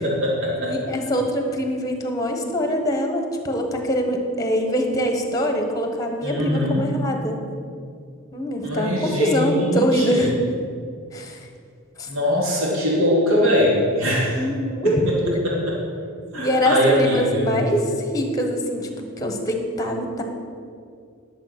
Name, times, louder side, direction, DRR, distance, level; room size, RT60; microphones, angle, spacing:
voice 1, 0.0-0.9 6.2-6.9 8.6-10.3 12.1-14.4 14.8-15.8 16.3-17.6, equal, 75° right, -4 dB, 2.7 m, -22 dB
voice 2, 0.6-7.4 8.3-10.3 11.1-11.4 12.0-12.1 14.3-15.0 16.3-17.8 18.1-20.2, equal, 15° left, 4 dB, 1.3 m, -24 dB
11.0 x 6.9 x 5.9 m, 2.3 s
head